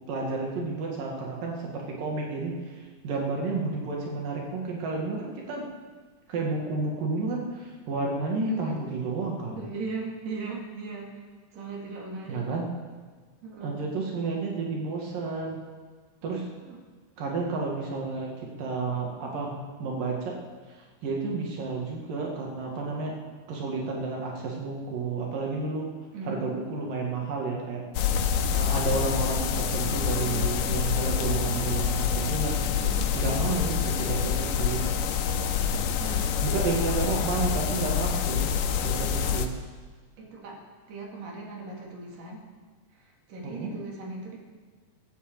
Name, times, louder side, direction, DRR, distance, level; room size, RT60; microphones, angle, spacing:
voice 1, 0.1-5.6 6.3-9.6 12.3-12.7 13.6-15.6 16.2-16.5 17.2-20.4 20.7-23.1 23.5-25.9 26.3-27.8 28.5-32.7 33.2-34.9 36.4-38.5 38.8-39.5 43.4-43.7, right 3 dB, 85° right, -1 dB, 3.7 m, -31 dB
voice 2, 8.4-8.8 9.6-12.4 13.4-13.8 16.6-16.8 26.1-26.5 32.8-33.1 36.0-36.4 39.2-39.6 40.2-40.6 40.9-42.4 42.9-44.4, right 4 dB, 55° right, -1 dB, 3.4 m, -38 dB
Snö som faller, 27.9-39.5, left 7 dB, 90° left, 2.5 m, -27 dB
18.5 x 8.5 x 7.7 m, 1.5 s
omnidirectional pair, 3.8 m